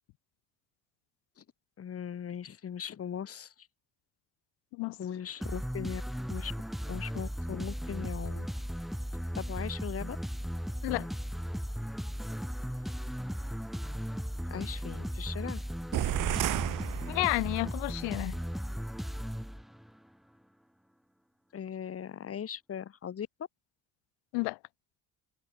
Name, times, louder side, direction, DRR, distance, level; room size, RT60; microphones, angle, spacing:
voice 1, 1.8-3.7 5.0-6.0 6.3-6.5 6.9-8.5 9.4-10.2 14.5-15.6 21.5-23.3, left 8 dB, 35° left, 1.1 m, -39 dB
sound 1, 5.4-20.0, equal, ahead, 1.2 m, -36 dB
sound 2, 15.9-17.8, right 15 dB, 55° right, 0.6 m, -32 dB
voice 2, 17.1-18.4 24.3-24.6, left 28 dB, 85° left, 0.6 m, -31 dB
supercardioid pair, 75°, 39 cm